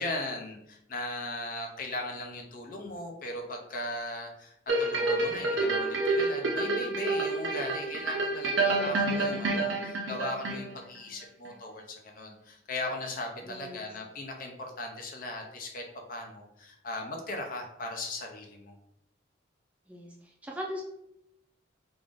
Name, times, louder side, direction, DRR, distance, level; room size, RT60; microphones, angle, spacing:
voice 1, 0.0-18.8, left 2 dB, 45° left, 2 dB, 0.6 m, -38 dB
sound 1, 4.7-11.0 11.5-11.6, right 2 dB, 70° right, 0.6 m, -28 dB
voice 2, 8.6-9.5 13.4-13.9 19.9-20.8, equal, 5° right, -2 dB, 0.5 m, -40 dB
3.5 x 2.5 x 3.5 m, 0.79 s
head